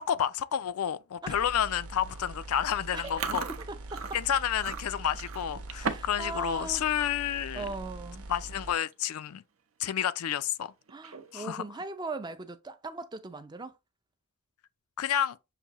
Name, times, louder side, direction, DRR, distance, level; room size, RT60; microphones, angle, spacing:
voice 1, 0.0-3.4 4.1-7.6 8.3-9.4 9.8-10.7 11.3-11.6 15.0-15.4, left 9 dB, 90° left, 0.4 m, -30 dB
sound 1, 1.3-8.7, right 2 dB, 90° right, 0.9 m, -43 dB
voice 2, 2.9-4.1 5.7-6.9 7.5-8.3 10.9-13.8, right 3 dB, 20° right, 0.4 m, -39 dB
Chewing mastication, 3.0-6.2 6.5-6.9 7.3-7.5 8.3-8.4 8.6-8.9 9.3-9.4 10.9-11.5, right 5 dB, 75° right, 0.6 m, -37 dB
6.7 x 2.6 x 2.9 m
head